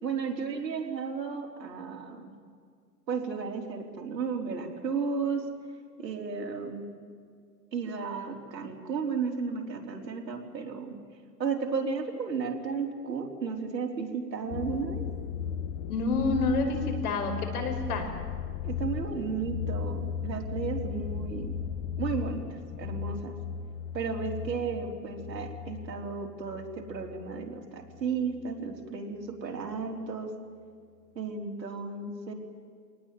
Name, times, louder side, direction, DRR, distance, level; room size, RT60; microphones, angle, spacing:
voice 1, 0.0-2.3 3.1-5.5 6.0-6.9 7.7-11.0 11.4-15.1 18.6-21.6 22.0-23.4 23.9-30.3 31.2-32.3, right 5 dB, 85° right, 3 dB, 4.1 m, -34 dB
sound 1, 14.5-27.5 27.8-28.4, left 7 dB, 25° left, 1.0 m, -36 dB
voice 2, 15.9-18.1, left 3 dB, 60° left, 5 dB, 5.3 m, -28 dB
25.5 x 19.0 x 9.5 m, 2.1 s
hypercardioid pair, 145°, 49 cm